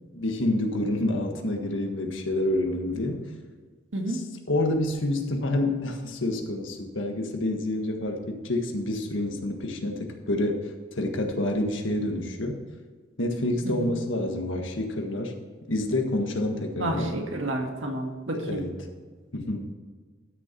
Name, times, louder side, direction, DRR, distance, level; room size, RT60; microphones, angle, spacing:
voice 1, 0.1-3.2 4.5-10.7 11.0-12.6 13.2-15.3 15.7-17.1 18.3-18.7 19.3-19.7, left 1 dB, 85° left, 4 dB, 1.6 m, -28 dB
voice 2, 3.9-4.2 13.7-13.9 16.8-18.6, right 1 dB, 90° right, 2 dB, 1.9 m, -30 dB
12.5 x 6.8 x 4.5 m, 1.5 s
head